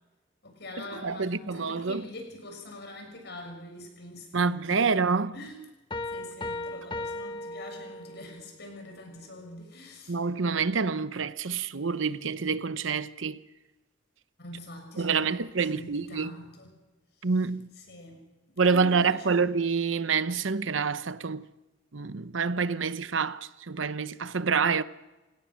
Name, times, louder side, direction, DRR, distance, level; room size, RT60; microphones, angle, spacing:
voice 1, 0.4-5.0 5.3-5.6 6.1-10.2 14.4-16.7 17.2-17.3 17.8-18.2 18.7-19.4, left 1 dB, 60° left, 6.9 m, -44 dB
voice 2, 1.0-2.0 4.3-5.3 10.1-13.4 15.0-16.3 17.2-17.7 18.6-21.4 21.9-24.8, right 5 dB, 75° right, 0.8 m, -27 dB
sound 1, 5.9-8.4, left 2 dB, 25° left, 1.2 m, -36 dB
29.5 x 17.5 x 6.4 m
head